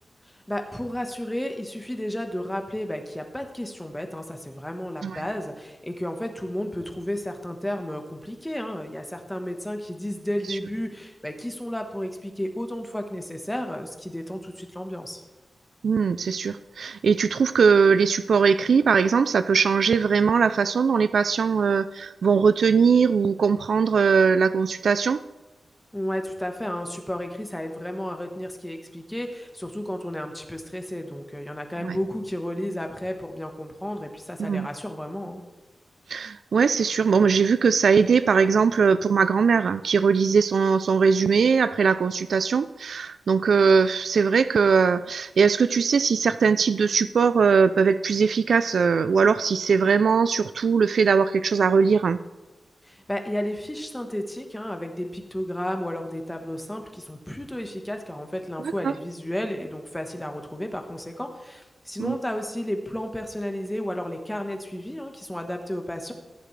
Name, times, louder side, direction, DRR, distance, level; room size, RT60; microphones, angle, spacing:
voice 1, 0.5-15.2 25.9-35.4 52.8-66.1, left 1 dB, 10° left, 4 dB, 1.2 m, -32 dB
voice 2, 15.8-25.2 31.8-32.0 34.4-34.7 36.1-52.2 58.6-58.9 62.0-62.2, right 5 dB, 90° right, 13 dB, 0.3 m, -20 dB
14.5 x 10.0 x 3.2 m, 1.1 s
wide cardioid pair, 155°, 0 cm